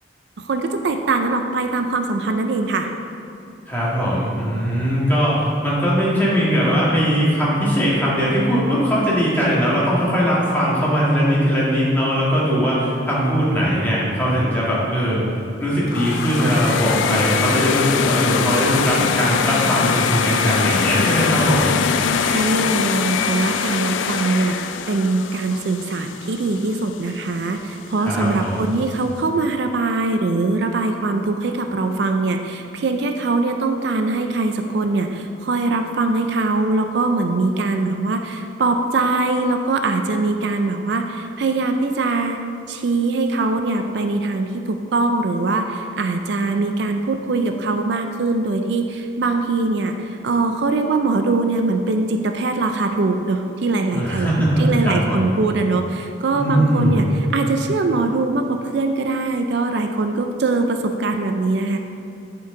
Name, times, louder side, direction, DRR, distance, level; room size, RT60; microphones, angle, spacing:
voice 1, 0.4-2.9 22.2-42.4 42.7-54.3 54.6-61.8, right 3 dB, 60° right, 5 dB, 0.4 m, -22 dB
voice 2, 3.7-15.2 15.6-21.8 28.0-28.6 53.9-55.3 56.3-57.0, equal, 10° left, -7 dB, 1.6 m, -20 dB
sound 1, 15.9-26.9, left 6 dB, 80° left, 0.4 m, -22 dB
10.5 x 4.6 x 3.7 m, 2.7 s
head